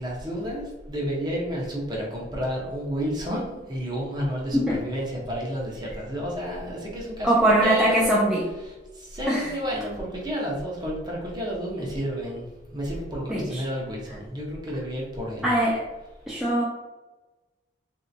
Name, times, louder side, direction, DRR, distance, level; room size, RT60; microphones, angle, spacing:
voice 1, 0.0-7.3 7.6-7.9 8.7-15.5, equal, 25° right, -3 dB, 0.8 m, -31 dB
voice 2, 7.2-8.5 9.3-9.4 13.3-13.6 15.4-15.8 16.3-16.6, right 1 dB, ahead, -6 dB, 0.4 m, -21 dB
3.3 x 2.7 x 2.7 m, 1.1 s
head